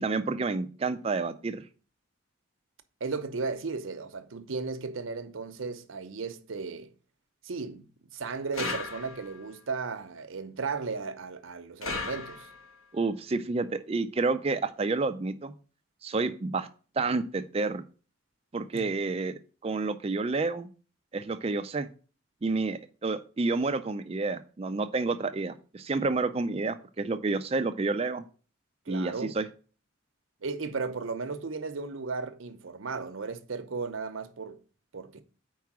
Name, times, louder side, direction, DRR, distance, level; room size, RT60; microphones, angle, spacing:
voice 1, 0.0-1.6 12.9-15.5 16.0-16.7 17.0-17.8 18.5-20.7 21.1-21.9 22.4-28.2 28.9-29.5, right 3 dB, 30° right, 0.4 m, -29 dB
voice 2, 3.0-6.9 7.4-12.5 18.7-19.0 28.9-29.4 30.4-34.6 34.9-35.2, right 4 dB, 75° right, 0.7 m, -35 dB
sound 1, 8.5-9.4 11.8-12.7, left 3 dB, 85° left, 1.3 m, -36 dB
4.7 x 4.7 x 6.0 m
head